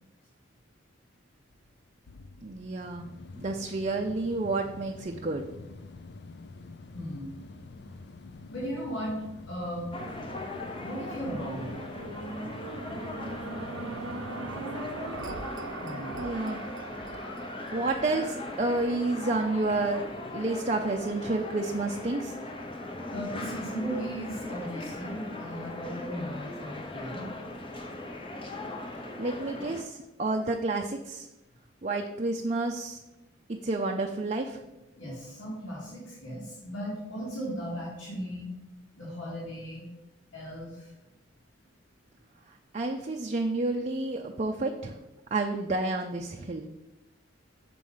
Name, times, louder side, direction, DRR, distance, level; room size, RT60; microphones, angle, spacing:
sound 1, 1.5-15.2, left 3 dB, 55° left, 0.5 m, -47 dB
voice 1, 2.4-3.1 3.4-5.4 16.2-16.6 17.7-20.0 20.3-22.4 29.2-31.3 31.8-33.0 33.5-34.6 42.7-45.0 45.3-46.7, right 2 dB, 35° right, 2 dB, 0.5 m, -30 dB
voice 2, 6.9-7.3 8.5-9.9 10.8-11.7 15.8-16.2 23.1-27.3 35.0-38.5 39.0-39.9 40.3-40.9, equal, 90° left, -6 dB, 2.4 m, -37 dB
sound 2, 9.9-29.8, left 2 dB, 25° left, 0.8 m, -39 dB
sound 3, 10.1-20.4 21.0-21.1, right 3 dB, 85° right, 0.6 m, -41 dB
6.8 x 4.8 x 5.5 m, 0.96 s
head